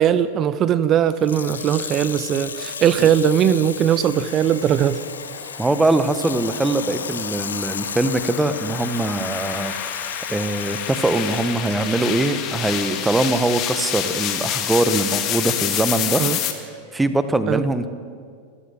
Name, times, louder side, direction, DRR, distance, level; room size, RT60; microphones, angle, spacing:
voice 1, 0.0-5.1 16.2-16.4 17.5-17.6, right 9 dB, 30° right, 16 dB, 0.8 m, -19 dB
Water tap faucet / Sink (filling or washing), 1.1-15.1 15.8-15.9, left 7 dB, 70° left, 0.9 m, -34 dB
sound 1, 1.3-17.0, right 1 dB, 70° right, 7.9 m, -46 dB
sound 2, 4.5-16.5, left 10 dB, 35° left, 2.1 m, -29 dB
voice 2, 5.6-9.7 10.3-16.2 16.9-17.9, right 2 dB, 10° right, 11 dB, 1.4 m, -22 dB
27.0 x 15.0 x 8.0 m, 2.1 s
figure-of-eight pair, 90°, 0 cm